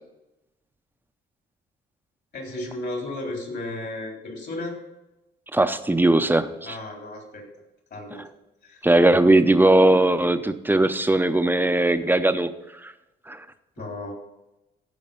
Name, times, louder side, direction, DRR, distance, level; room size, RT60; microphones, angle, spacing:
voice 1, 2.3-4.8 6.6-7.5 7.9-8.2 8.6-8.8 10.2-10.3 13.8-14.2, left 2 dB, 60° left, 1 dB, 3.8 m, -34 dB
voice 2, 5.5-6.8 8.8-12.5 12.8-12.9 13.3-13.4, right 2 dB, 10° right, 10 dB, 0.7 m, -19 dB
14.0 x 5.3 x 5.3 m, 0.98 s
cardioid pair, 90°, 20 cm